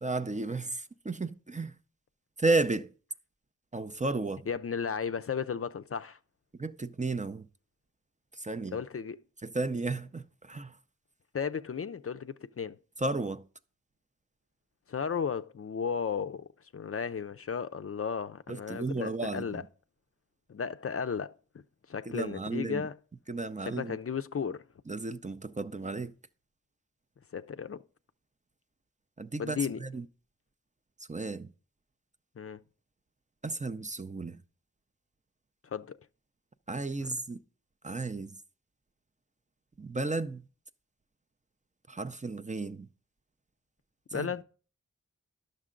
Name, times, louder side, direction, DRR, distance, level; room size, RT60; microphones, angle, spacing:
voice 1, 0.0-1.7 2.4-2.9 3.7-4.5 6.6-7.5 8.3-8.8 9.4-10.8 13.0-13.4 18.5-19.6 22.1-22.8 23.3-24.0 24.9-26.1 29.2-30.1 31.1-31.5 33.4-34.4 36.7-37.4 37.8-38.4 39.8-40.5 41.9-42.9 44.1-44.3, right 3 dB, 25° right, 0.4 m, -33 dB
voice 2, 4.5-6.2 8.7-9.2 11.3-12.8 14.9-19.6 20.5-21.6 21.9-23.0 23.6-24.6 27.3-27.8 29.4-29.8 32.4-32.6 35.6-36.0 37.0-37.1 44.1-44.4, left 6 dB, 50° left, 0.4 m, -34 dB
11.0 x 6.6 x 3.7 m
wide cardioid pair, 45°, 31 cm